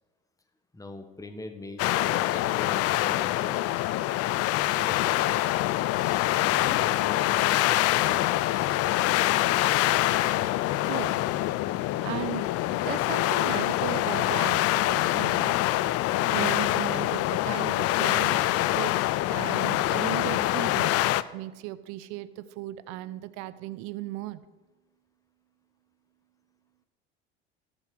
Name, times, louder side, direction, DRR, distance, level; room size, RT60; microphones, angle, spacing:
voice 1, 0.7-3.6 4.5-5.5 5.8-8.7, left 2 dB, 10° left, 7 dB, 1.5 m, -43 dB
sound 1, 1.8-21.2, left 16 dB, 50° left, 0.6 m, -25 dB
voice 2, 10.8-11.2 12.0-12.5 12.8-14.6 14.9-15.5 16.3-18.4 18.7-18.9 19.3-21.0 21.3-24.4, right 15 dB, 60° right, 15 dB, 0.8 m, -36 dB
13.5 x 7.8 x 6.4 m, 1.2 s
hypercardioid pair, 70°, 31 cm